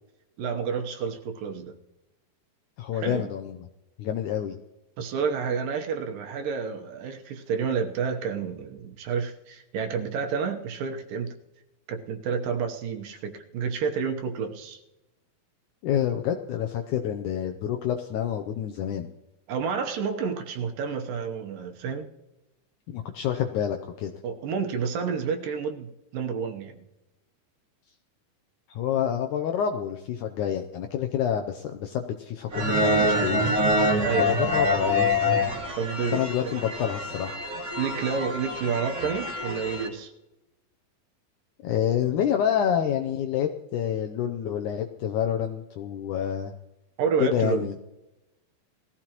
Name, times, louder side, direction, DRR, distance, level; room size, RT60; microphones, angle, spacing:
voice 1, 0.4-1.8 3.0-3.3 5.0-11.4 11.9-14.8 19.5-22.0 24.2-26.8 34.0-34.4 35.8-36.5 37.8-40.1 47.0-47.7, right 6 dB, 70° right, 5 dB, 2.6 m, -30 dB
voice 2, 2.8-3.6 4.0-4.6 15.8-19.1 22.9-24.1 28.7-33.5 34.2-35.2 36.1-37.4 41.6-46.5 47.2-47.8, left 9 dB, 75° left, 5 dB, 1.8 m, -28 dB
sound 1, 32.5-39.9, left 1 dB, 30° right, 1.9 m, -26 dB
19.5 x 14.5 x 3.0 m, 0.96 s
omnidirectional pair, 4.3 m